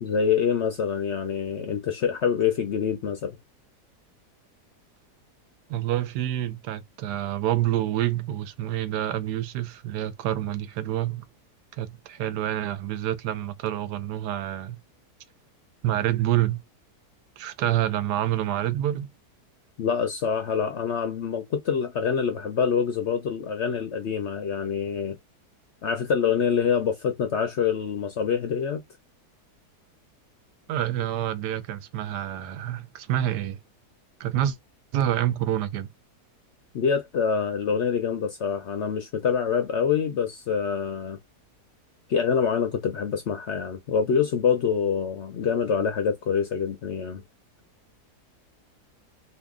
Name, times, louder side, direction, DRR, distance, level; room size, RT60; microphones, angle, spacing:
voice 1, 0.0-3.4 19.8-25.2 25.8-28.8 36.7-41.2 42.1-47.2, left 7 dB, 60° left, 0.7 m, -25 dB
voice 2, 5.7-11.2 11.8-14.8 15.8-16.6 17.4-19.1 30.7-33.6 34.2-34.6 34.9-35.9, right 12 dB, 85° right, 1.2 m, -27 dB
2.8 x 2.6 x 3.6 m
omnidirectional pair, 1.7 m